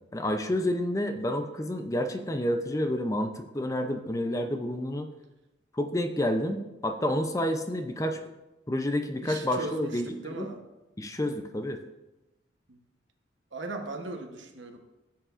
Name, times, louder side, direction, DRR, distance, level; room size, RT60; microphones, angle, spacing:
voice 1, 0.1-5.1 5.7-8.2 8.7-10.1 10.3-10.5 11.0-11.8, left 1 dB, 15° left, 6 dB, 0.5 m, -29 dB
voice 2, 9.2-10.6 12.7-12.8 13.5-14.8, right 3 dB, 75° right, 5 dB, 1.1 m, -38 dB
14.5 x 7.5 x 2.5 m, 0.99 s
head